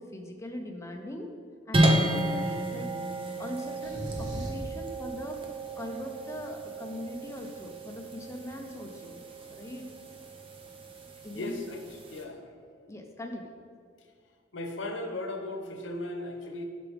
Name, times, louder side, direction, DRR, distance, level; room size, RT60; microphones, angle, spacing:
voice 1, 0.0-1.3 1.7-2.9 3.4-9.9 11.2-11.6 12.9-13.5, left 1 dB, 15° left, 3 dB, 0.7 m, -41 dB
sound 1, 1.7-12.2, right 1 dB, 30° right, 0.8 m, -32 dB
sound 2, 3.8-4.7, equal, 65° right, 2.0 m, -36 dB
voice 2, 11.3-11.8 12.1-12.5 14.5-16.6, left 2 dB, 75° left, 4 dB, 0.9 m, -36 dB
10.5 x 6.0 x 3.5 m, 2.1 s
head